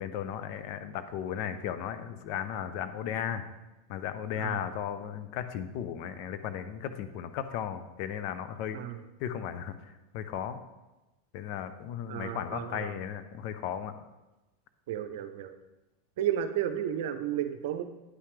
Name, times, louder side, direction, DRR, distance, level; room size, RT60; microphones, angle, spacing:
voice 1, 0.0-3.5 3.9-8.8 9.2-10.6 11.3-13.9, left 9 dB, 55° left, 10 dB, 0.6 m, -35 dB
voice 2, 12.1-12.9 14.9-15.6 16.2-17.8, right 10 dB, 65° right, 9 dB, 0.6 m, -33 dB
9.6 x 5.7 x 3.3 m, 1.0 s
hypercardioid pair, 100°, 0 cm